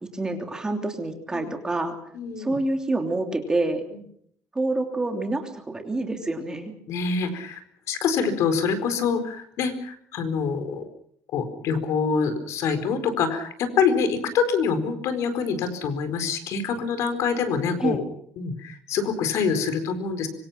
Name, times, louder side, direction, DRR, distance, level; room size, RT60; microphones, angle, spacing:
voice 1, 0.1-2.0 2.4-3.8 4.5-6.7 17.8-18.0, right 2 dB, 10° right, 4 dB, 3.0 m, -27 dB
voice 2, 2.1-2.6 6.9-7.6 7.9-10.8 11.3-18.0 18.4-20.3, left 5 dB, 60° left, 10 dB, 4.4 m, -25 dB
25.5 x 24.5 x 5.8 m, 0.66 s
cardioid pair, 170°, 6 cm